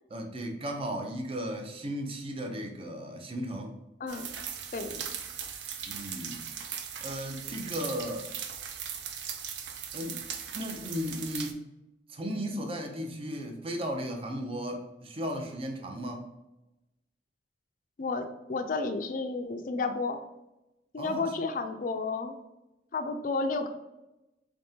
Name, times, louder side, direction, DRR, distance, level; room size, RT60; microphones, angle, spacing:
voice 1, 0.1-3.7 5.8-6.4 7.0-8.3 9.9-10.2 10.5-11.6 12.1-16.2 21.0-21.3, equal, 30° right, 3 dB, 0.6 m, -35 dB
voice 2, 4.0-4.3 4.7-5.1 18.0-20.2 20.9-22.4 22.9-23.7, left 3 dB, 50° left, 7 dB, 0.4 m, -32 dB
sound 1, 4.1-11.5, right 8 dB, 75° right, 0.5 m, -39 dB
3.6 x 3.5 x 2.7 m, 0.97 s
head